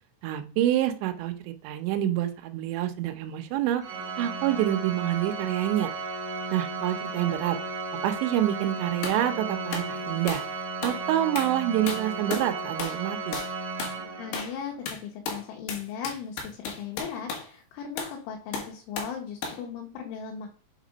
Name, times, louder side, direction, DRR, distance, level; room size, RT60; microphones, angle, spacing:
voice 1, 0.2-3.8 4.2-5.9 6.5-7.6 8.0-10.4 10.8-13.4, right 12 dB, 80° right, 7 dB, 2.8 m, -27 dB
Organ, 3.8-14.6, right 3 dB, 55° right, 1.7 m, -34 dB
Hand Claps, 9.0-9.2 9.7-9.9 10.3-10.5 10.8-11.0 11.4-11.6 11.9-12.5 12.8-13.0 13.3-13.5 13.8-14.0 14.3-14.6 14.9-17.5 18.0-18.2 18.5-19.2 19.4-19.6, left 4 dB, 70° left, 3.3 m, -35 dB
voice 2, 14.2-14.7 15.0-20.5, left 7 dB, 85° left, 0 dB, 3.5 m, -37 dB
7.4 x 3.6 x 5.0 m, 0.39 s
omnidirectional pair, 5.4 m